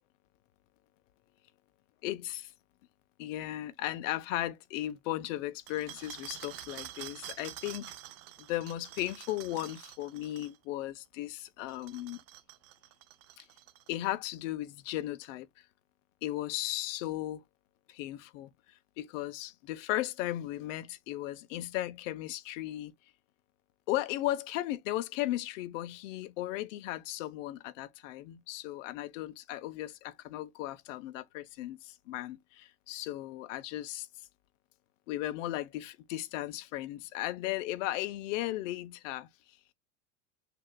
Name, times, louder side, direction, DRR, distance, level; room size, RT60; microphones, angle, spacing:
voice 1, 2.0-2.5 3.2-7.9 8.4-12.2 13.4-13.5 13.9-15.5 16.2-17.4 17.9-18.5 19.0-22.9 23.9-34.1 35.1-39.3, left 15 dB, 70° left, 0.9 m, -36 dB
sound 1, 5.7-10.6 11.6-14.1, right 14 dB, 40° right, 0.5 m, -47 dB
6.8 x 2.8 x 2.3 m
supercardioid pair, 140°, 39 cm